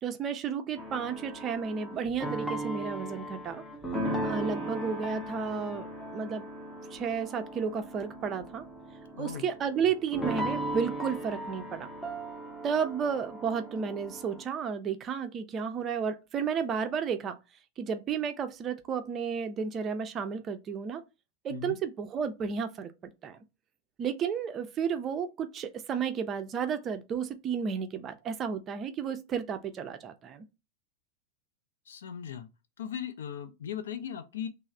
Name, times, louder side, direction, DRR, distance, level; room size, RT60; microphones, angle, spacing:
voice 1, 0.0-3.6 4.2-5.9 6.1-6.4 6.9-8.6 9.2-11.9 12.6-17.4 17.8-21.0 21.4-22.9 23.2-23.4 24.0-30.5, right 6 dB, 30° right, 0.4 m, -32 dB
sound 1, 0.8-14.4, right 1 dB, 5° left, 0.7 m, -37 dB
voice 2, 9.1-9.5 21.5-21.8 31.9-32.5 32.8-34.5, left 8 dB, 60° left, 0.4 m, -38 dB
3.1 x 2.0 x 3.8 m
figure-of-eight pair, 90°, 0 cm